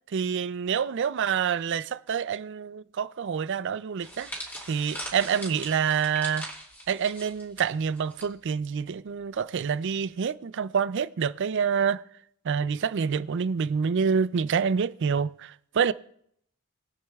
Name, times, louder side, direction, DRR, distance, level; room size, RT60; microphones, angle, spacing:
voice 1, 0.1-4.3 4.7-6.5 6.9-12.0 12.4-15.9, right 6 dB, 55° right, 0.4 m, -27 dB
sound 1, 4.0-8.3 8.5-8.8 9.7-9.9, equal, 10° left, 2.5 m, -40 dB
21.0 x 8.4 x 2.3 m
head